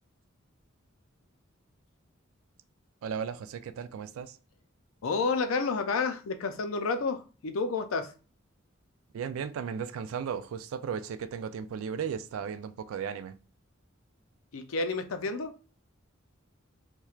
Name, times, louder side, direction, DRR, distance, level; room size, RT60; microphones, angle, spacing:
voice 1, 3.0-4.4 9.1-13.4, right 7 dB, 90° right, 0.3 m, -35 dB
voice 2, 5.0-8.1 14.5-15.5, left 4 dB, 85° left, 0.5 m, -30 dB
4.3 x 2.2 x 2.4 m
head